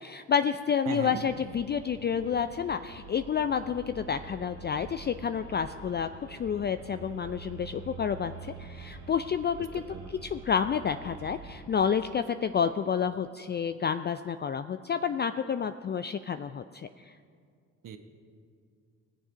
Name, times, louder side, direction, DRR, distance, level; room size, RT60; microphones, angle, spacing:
voice 1, 0.0-17.2, left 7 dB, 25° left, 10 dB, 0.4 m, -30 dB
voice 2, 0.9-1.2 9.9-10.1 17.8-18.0, right 7 dB, 50° right, 6 dB, 1.3 m, -36 dB
sound 1, 1.0-11.6, right 3 dB, 85° right, 2.1 m, -46 dB
19.0 x 7.4 x 5.1 m, 2.2 s
hypercardioid pair, 55°, 40 cm